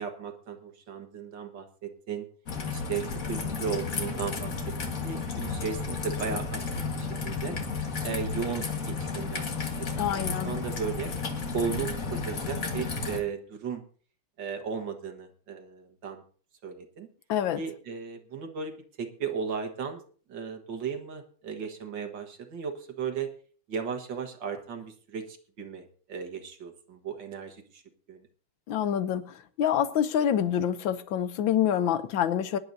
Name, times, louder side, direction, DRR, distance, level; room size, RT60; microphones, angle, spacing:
voice 1, 0.0-2.3 2.7-4.5 4.9-7.6 8.0-9.7 10.0-11.1 11.5-13.8 14.4-16.2 16.6-17.1 17.6-18.7 19.0-20.0 20.3-23.3 23.7-27.8 28.1-28.2, right 6 dB, 60° right, 2.1 m, -35 dB
Raindrop / Trickle dribble, 2.5-13.2, left 4 dB, 40° left, 1.8 m, -33 dB
voice 2, 10.0-10.5 17.3-17.6 28.7-32.6, left 9 dB, 70° left, 1.4 m, -27 dB
23.5 x 11.0 x 2.7 m
omnidirectional pair, 2.4 m